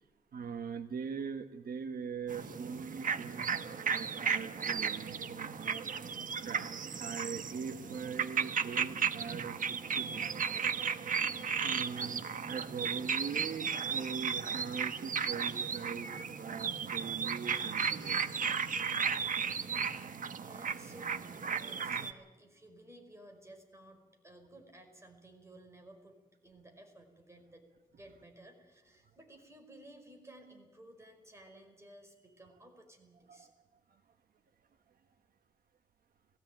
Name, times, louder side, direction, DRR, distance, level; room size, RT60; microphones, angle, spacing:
voice 1, 0.3-5.9 6.3-10.7 11.6-16.1 16.4-18.2 33.3-33.5 33.9-34.0, right 6 dB, 80° right, 7 dB, 1.3 m, -42 dB
sound 1, 2.3-22.1, right 6 dB, 65° right, 1.1 m, -35 dB
voice 2, 20.4-27.7 28.0-33.5, right 1 dB, 20° right, 4 dB, 5.3 m, -56 dB
19.5 x 16.5 x 9.2 m, 1.2 s
wide cardioid pair, 105°, 15 cm